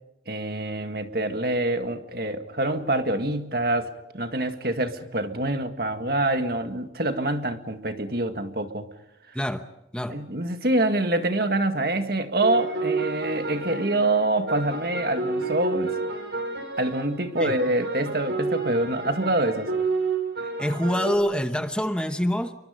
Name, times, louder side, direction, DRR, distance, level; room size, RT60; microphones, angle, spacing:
voice 1, 0.3-8.9 10.1-16.0 16.8-19.7, right 1 dB, 55° right, 1.9 m, -26 dB
sound 1, 12.4-21.2, right 3 dB, 75° right, 5.8 m, -30 dB
voice 2, 20.4-22.5, equal, 5° left, 0.9 m, -26 dB
29.0 x 23.5 x 5.3 m
head